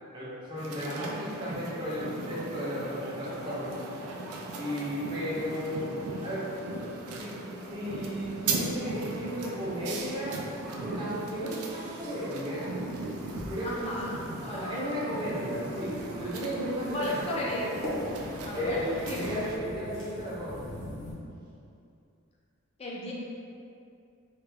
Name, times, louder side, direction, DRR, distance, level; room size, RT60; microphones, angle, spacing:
voice 1, 0.1-3.8 4.6-5.9 6.2-6.5 7.2-7.3 7.7-10.4 10.8-12.7 13.5-14.1 14.5-17.3 18.5-20.6, equal, 20° right, -9 dB, 0.6 m, -34 dB
sound 1, 0.6-19.6, right 3 dB, 85° right, 0.4 m, -38 dB
sound 2, 6.4-21.1, left 1 dB, 65° left, 0.7 m, -45 dB
voice 2, 13.6-14.7 16.9-17.7 18.4-19.3 22.8-23.1, left 1 dB, 30° left, -4 dB, 0.4 m, -34 dB
3.1 x 2.3 x 3.3 m, 2.6 s
head